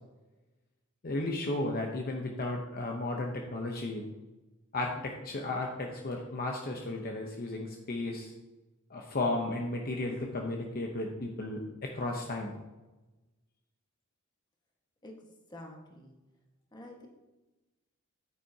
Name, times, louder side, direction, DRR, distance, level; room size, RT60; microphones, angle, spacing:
voice 1, 1.0-4.0 4.7-8.3 8.9-12.5, left 2 dB, 45° left, 1 dB, 0.8 m, -34 dB
voice 2, 15.0-16.1 16.7-17.1, left 1 dB, 20° left, 0 dB, 1.5 m, -48 dB
9.3 x 9.2 x 2.8 m, 1.1 s
head